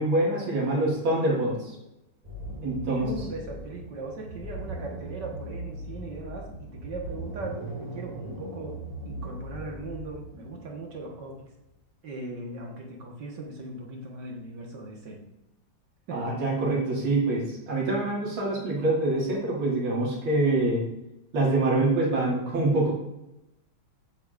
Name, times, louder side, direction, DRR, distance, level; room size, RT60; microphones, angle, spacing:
voice 1, 0.0-1.8 2.6-3.1 16.1-20.8 21.3-22.9, right 2 dB, 70° right, -5 dB, 2.8 m, -25 dB
sound 1, 2.2-11.6, right 1 dB, 20° right, 1.4 m, -39 dB
voice 2, 2.9-11.5 12.0-15.2 16.1-16.4, right 2 dB, 55° right, 0 dB, 2.0 m, -39 dB
8.3 x 7.4 x 2.5 m, 0.89 s
omnidirectional pair, 2.3 m